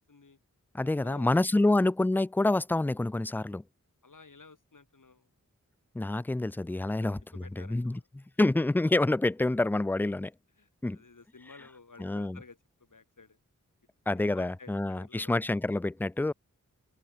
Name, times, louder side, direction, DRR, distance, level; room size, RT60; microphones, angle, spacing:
voice 1, 0.1-0.4 0.8-1.7 4.0-5.3 7.0-8.1 10.6-13.4 14.3-15.4, left 4 dB, 75° left, 5.9 m, -54 dB
voice 2, 0.7-3.6 5.9-10.3 10.8-11.0 12.0-12.4 14.1-16.3, left 2 dB, 5° left, 0.3 m, -27 dB
open air
wide cardioid pair, 70°, 32 cm